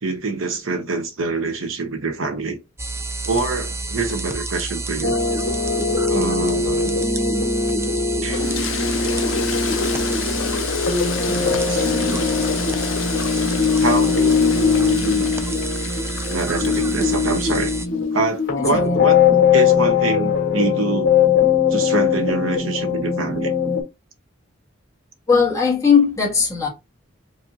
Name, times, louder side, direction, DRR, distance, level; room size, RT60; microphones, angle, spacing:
voice 1, 0.0-2.6 3.3-5.2 6.1-7.1 8.2-8.6 11.3-12.3 13.1-13.5 13.8-15.3 16.3-17.7 18.1-21.1 21.7-23.5, right 3 dB, 90° right, 0.9 m, -26 dB
sound 1, 2.8-17.9, right 3 dB, 15° right, 0.3 m, -29 dB
sound 2, 5.0-23.8, left 6 dB, 55° left, 1.8 m, -20 dB
Toilet flush, 8.3-17.7, left 7 dB, 75° left, 0.4 m, -29 dB
voice 2, 25.3-26.7, left 6 dB, 15° left, 1.5 m, -18 dB
4.8 x 2.7 x 2.8 m
head